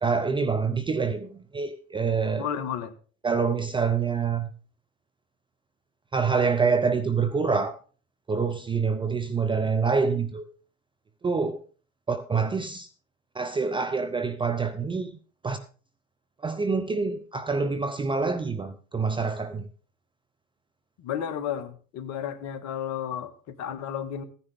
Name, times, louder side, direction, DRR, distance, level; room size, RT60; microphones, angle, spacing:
voice 1, 0.0-2.5 3.2-4.5 6.1-7.8 8.3-10.5 11.2-11.6 12.1-12.9 13.3-15.1 15.4-15.6 16.4-19.7, right 5 dB, 10° right, 9 dB, 0.7 m, -26 dB
voice 2, 2.4-2.9 21.0-24.2, left 9 dB, 40° left, 11 dB, 1.7 m, -32 dB
15.5 x 10.0 x 3.6 m, 0.39 s
hypercardioid pair, 100°, 43 cm